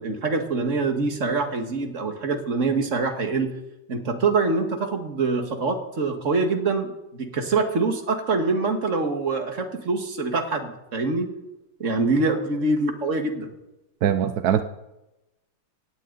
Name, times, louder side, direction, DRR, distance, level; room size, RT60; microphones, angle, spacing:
voice 1, 0.0-3.5 3.9-11.3 11.8-13.5, right 3 dB, 40° right, 5 dB, 1.9 m, -25 dB
voice 2, 14.0-14.6, right 9 dB, 70° right, 10 dB, 0.9 m, -21 dB
17.5 x 17.0 x 4.0 m, 0.96 s
omnidirectional pair, 2.3 m